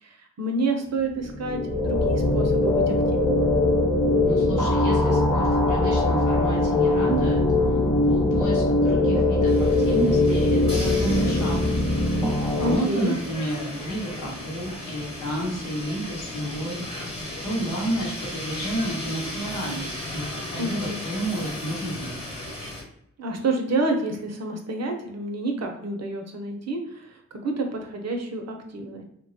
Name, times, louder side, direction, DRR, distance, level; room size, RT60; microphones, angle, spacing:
voice 1, 0.0-3.4 12.6-13.1 20.6-21.0 23.2-29.0, right 2 dB, 60° right, 3 dB, 0.7 m, -29 dB
sound 1, 1.2-12.7, left 2 dB, 5° left, 0.7 m, -21 dB
voice 2, 4.2-7.4 8.0-11.6 12.6-16.8 17.4-22.2, right 1 dB, 85° left, -3 dB, 0.9 m, -30 dB
sound 2, 9.5-22.8, left 1 dB, 20° left, 1.1 m, -35 dB
3.0 x 2.2 x 2.7 m, 0.75 s
cardioid pair, 45°, 30 cm